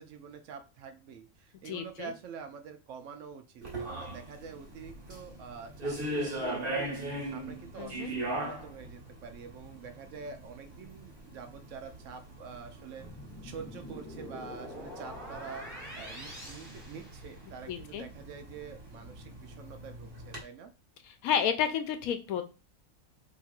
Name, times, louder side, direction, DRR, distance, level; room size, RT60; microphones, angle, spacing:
voice 1, 0.0-13.1 13.4-15.7 16.0-20.7, right 6 dB, 70° right, 7 dB, 0.9 m, -46 dB
voice 2, 1.7-2.1 7.8-8.1 17.7-18.0 21.2-22.4, left 8 dB, 85° left, 9 dB, 1.1 m, -31 dB
sound 1, 3.6-20.4, right 1 dB, 40° right, 1.5 m, -40 dB
sound 2, 13.0-17.7, equal, 5° left, 1.2 m, -45 dB
4.3 x 2.9 x 2.4 m, 0.31 s
omnidirectional pair, 1.5 m